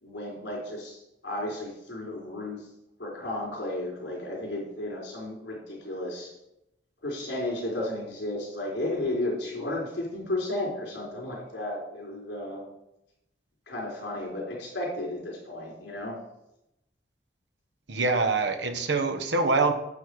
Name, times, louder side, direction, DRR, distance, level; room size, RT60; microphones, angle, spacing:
voice 1, 0.0-2.6 3.0-6.3 7.0-12.6 13.7-16.2, left 1 dB, 75° left, -2 dB, 3.9 m, -33 dB
voice 2, 17.9-19.7, right 3 dB, 70° right, 8 dB, 1.2 m, -25 dB
8.9 x 7.8 x 4.8 m, 0.85 s
head